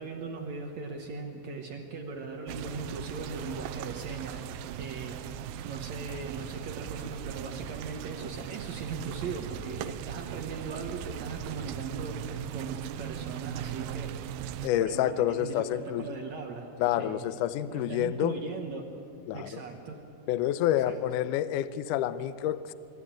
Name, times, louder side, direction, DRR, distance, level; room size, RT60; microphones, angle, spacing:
voice 1, 0.0-5.3 5.6-14.2 14.8-16.7 17.0-17.2 17.7-19.0 19.3-20.0 20.9-21.0, right 4 dB, 60° right, 3 dB, 2.0 m, -39 dB
sound 1, 2.5-14.7, right 10 dB, 80° right, 2.4 m, -39 dB
voice 2, 14.6-16.1 16.8-18.4 19.3-19.6 20.3-22.7, left 12 dB, 90° left, 14 dB, 1.8 m, -28 dB
25.0 x 12.5 x 8.8 m, 2.6 s
omnidirectional pair, 4.4 m